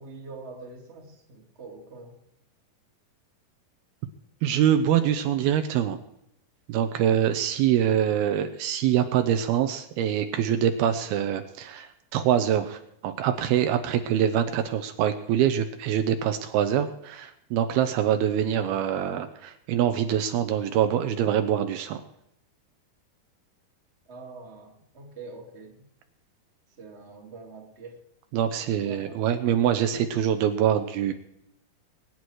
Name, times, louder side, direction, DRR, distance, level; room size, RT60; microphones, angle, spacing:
voice 1, 0.0-2.2 24.1-25.9 26.8-28.0 28.6-29.4, right 3 dB, 20° right, 0 dB, 1.8 m, -44 dB
voice 2, 4.4-6.0 6.7-22.0 28.3-31.1, right 10 dB, 75° right, 8 dB, 2.7 m, -24 dB
22.5 x 10.0 x 4.8 m, 0.76 s
omnidirectional pair, 4.6 m